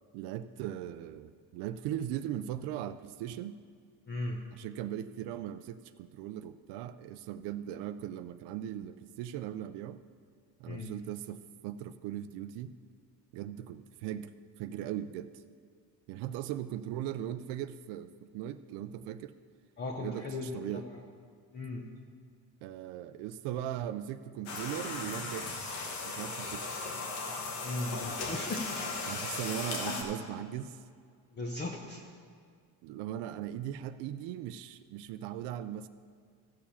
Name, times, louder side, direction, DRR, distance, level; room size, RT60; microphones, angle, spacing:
voice 1, 0.1-3.6 4.5-10.0 10.6-12.7 13.3-15.4 16.1-19.3 20.0-20.9 22.6-25.5 26.0-26.8 29.0-30.8 32.8-35.9, right 11 dB, 85° right, 11 dB, 0.5 m, -39 dB
voice 2, 4.1-4.4 10.7-10.9 19.8-20.8 21.5-21.8 27.6-28.8 31.4-32.0, left 2 dB, 25° left, 0 dB, 0.8 m, -37 dB
sound 1, 24.4-30.0, left 3 dB, 80° left, 1.7 m, -37 dB
14.0 x 4.8 x 7.1 m, 2.1 s
cardioid pair, 120°, 40 cm